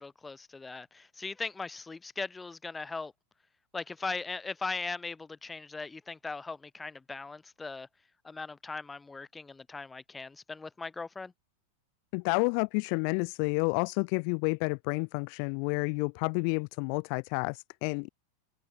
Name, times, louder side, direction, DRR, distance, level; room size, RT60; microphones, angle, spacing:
voice 1, 0.0-3.1 3.7-7.9 8.2-11.3, left 4 dB, 10° left, 2.9 m, -39 dB
voice 2, 12.1-18.1, left 40 dB or more, 45° left, 1.7 m, -30 dB
open air
figure-of-eight pair, 90°, 0 cm